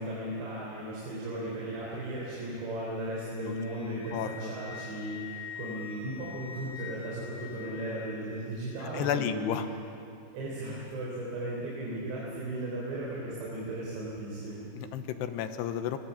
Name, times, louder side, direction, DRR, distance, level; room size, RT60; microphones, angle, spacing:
voice 1, 0.0-9.5 10.3-14.7, right 1 dB, 85° right, -5 dB, 6.0 m, -36 dB
Wind instrument woodwind instrument, 2.7-8.7, left 8 dB, 40° left, 3.4 m, -46 dB
voice 2, 3.9-4.5 8.8-9.6 14.8-16.0, left 9 dB, 80° left, 9 dB, 2.9 m, -33 dB
24.5 x 21.0 x 7.3 m, 2.6 s
omnidirectional pair, 5.0 m